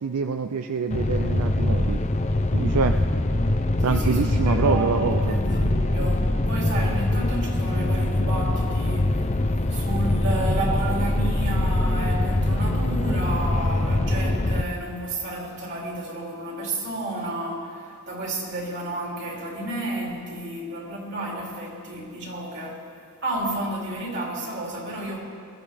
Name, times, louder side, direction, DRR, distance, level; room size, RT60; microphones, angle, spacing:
voice 1, 0.0-2.0 2.5-3.0 3.8-5.4, right 5 dB, 85° right, 7 dB, 0.5 m, -25 dB
sound 1, 0.9-14.6, left 1 dB, 30° left, 0.5 m, -23 dB
voice 2, 3.9-9.2 9.7-22.9 23.2-25.2, right 1 dB, 50° right, -3 dB, 3.1 m, -31 dB
21.5 x 14.0 x 3.5 m, 2.6 s
head